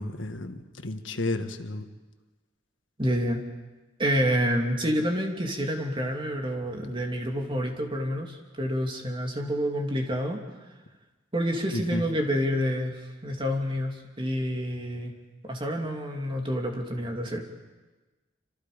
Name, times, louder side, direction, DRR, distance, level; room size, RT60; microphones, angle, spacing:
voice 1, 0.0-1.8 11.7-12.0, left 2 dB, 90° left, 7 dB, 1.6 m, -32 dB
voice 2, 3.0-3.4 4.0-10.4 11.3-15.1 15.4-17.4, equal, 30° right, 2 dB, 2.9 m, -28 dB
28.0 x 26.5 x 5.2 m, 1.2 s
head